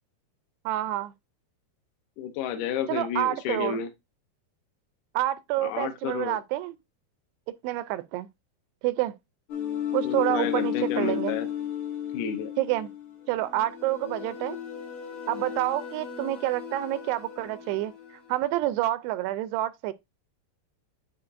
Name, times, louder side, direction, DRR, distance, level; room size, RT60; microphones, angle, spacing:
voice 1, 0.7-1.1 2.9-3.8 5.2-6.8 7.6-8.3 8.8-9.2 9.9-11.4 12.6-12.9 13.3-14.6 15.3-17.9 18.3-19.9, right 15 dB, 90° right, 2.6 m, -28 dB
voice 2, 2.2-3.9 5.6-6.4 10.0-11.5 12.1-12.5, left 8 dB, 80° left, 1.9 m, -31 dB
sound 1, 9.5-18.5, left 9 dB, 55° left, 2.6 m, -34 dB
9.6 x 4.3 x 2.4 m
omnidirectional pair, 4.7 m